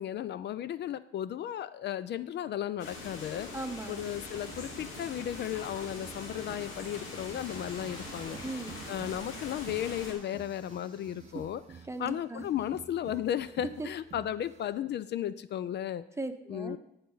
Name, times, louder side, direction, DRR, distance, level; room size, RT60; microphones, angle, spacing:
voice 1, 0.0-3.5 3.9-8.4 8.9-11.6 12.0-16.0 16.5-16.8, left 11 dB, 60° left, 16 dB, 0.4 m, -35 dB
sound 1, 2.8-10.1, left 2 dB, 85° left, 2.0 m, -43 dB
voice 2, 3.5-4.0 8.4-8.8 11.9-12.4 13.8-13.9 16.2-16.8, right 2 dB, 15° right, 8 dB, 0.9 m, -38 dB
sound 2, 3.9-14.8, right 7 dB, 35° right, 0.5 m, -51 dB
sound 3, 6.8-11.7, left 1 dB, 25° left, 1.8 m, -55 dB
15.0 x 5.4 x 3.9 m, 0.82 s
cardioid pair, 90°, 20 cm